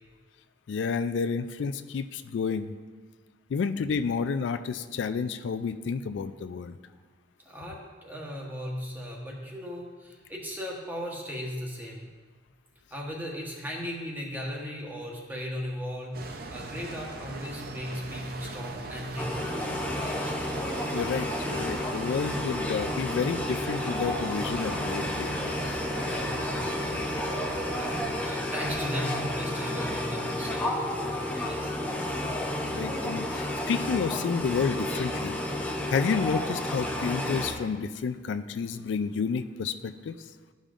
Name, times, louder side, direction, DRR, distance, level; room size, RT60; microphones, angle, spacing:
voice 1, 0.7-2.7 3.5-6.8 20.9-25.8 26.1-26.2 32.6-40.2, left 5 dB, 80° left, 10 dB, 0.3 m, -30 dB
voice 2, 7.4-12.1 12.9-19.5 20.0-20.3 26.1-26.5 27.8-31.7, equal, 10° right, -2 dB, 1.1 m, -37 dB
sound 1, 16.1-28.0, right 3 dB, 55° right, 0.6 m, -40 dB
sound 2, 19.2-37.5, left 1 dB, 10° left, 0.7 m, -31 dB
13.0 x 5.2 x 2.5 m, 1.4 s
head